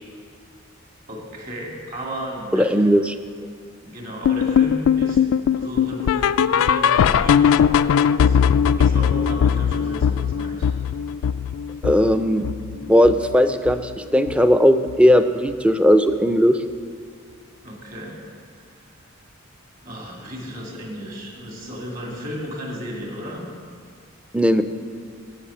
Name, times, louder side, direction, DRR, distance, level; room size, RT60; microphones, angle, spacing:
voice 1, 1.1-2.7 3.8-5.2 5.5-7.4 7.9-8.4 8.8-10.7 17.6-18.2 19.8-23.4, equal, 45° right, -1 dB, 2.4 m, -34 dB
voice 2, 2.5-3.1 11.8-12.5 12.9-16.6 24.3-24.6, equal, 5° right, 9 dB, 0.4 m, -17 dB
sound 1, 4.2-13.4 13.7-14.0 14.3-14.4 14.9-15.0 15.5-15.6, left 7 dB, 80° left, 0.3 m, -20 dB
12.5 x 5.7 x 8.6 m, 2.1 s
head